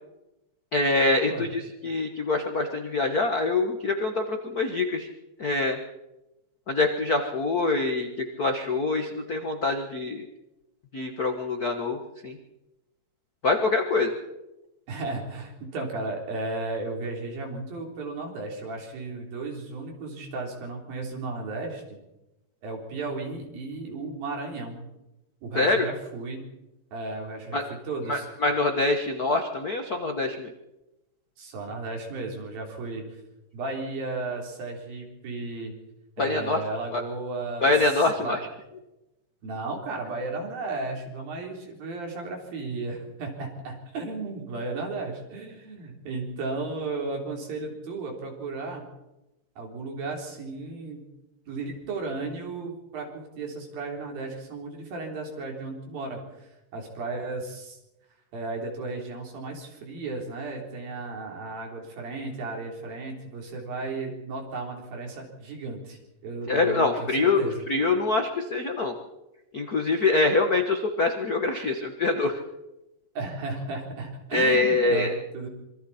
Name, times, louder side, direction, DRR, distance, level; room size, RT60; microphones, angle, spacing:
voice 1, 0.7-5.1 5.4-5.8 6.7-10.2 10.9-12.4 13.4-14.1 25.5-25.9 27.5-27.6 28.1-30.5 36.2-36.6 36.9-37.0 37.6-38.4 66.5-67.4 67.7-68.9 69.5-72.4 74.3-75.1, left 3 dB, 85° left, 5 dB, 0.8 m, -25 dB
voice 2, 14.9-21.8 22.6-24.9 25.4-26.5 26.9-28.3 31.4-33.1 33.5-35.7 36.2-38.4 39.4-48.8 49.6-51.1 51.5-57.8 58.3-67.6 73.2-75.5, right 3 dB, 85° right, 1 dB, 5.6 m, -34 dB
26.0 x 24.0 x 4.3 m, 0.95 s
omnidirectional pair, 4.0 m